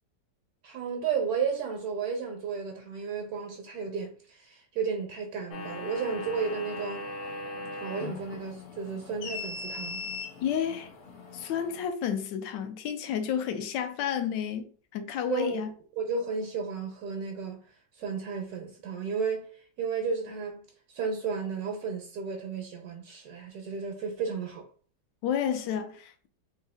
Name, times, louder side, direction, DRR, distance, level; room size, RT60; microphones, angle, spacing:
voice 1, 0.6-7.1 7.8-10.0 15.3-17.6 18.0-19.5 19.8-20.6 20.9-24.6, right 5 dB, 70° right, 1.1 m, -33 dB
sound 1, 5.5-11.8, left 2 dB, 60° left, 0.8 m, -39 dB
voice 2, 10.4-10.9 11.3-15.7 25.2-26.3, left 8 dB, 90° left, 1.3 m, -31 dB
3.5 x 2.6 x 3.4 m
omnidirectional pair, 1.9 m